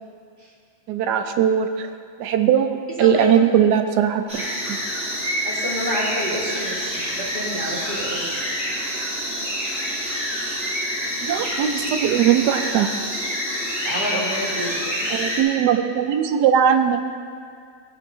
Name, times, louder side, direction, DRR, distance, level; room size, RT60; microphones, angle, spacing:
voice 1, 0.9-1.9 2.2-4.2 11.2-12.9 15.1-17.1, right 9 dB, 75° right, 8 dB, 1.0 m, -19 dB
voice 2, 3.0-3.3 5.4-8.3 13.9-15.1, right 1 dB, 25° right, -6 dB, 1.9 m, -29 dB
sound 1, 4.3-15.4, equal, 10° right, 2.2 m, -27 dB
15.5 x 9.0 x 2.8 m, 2.1 s
omnidirectional pair, 2.2 m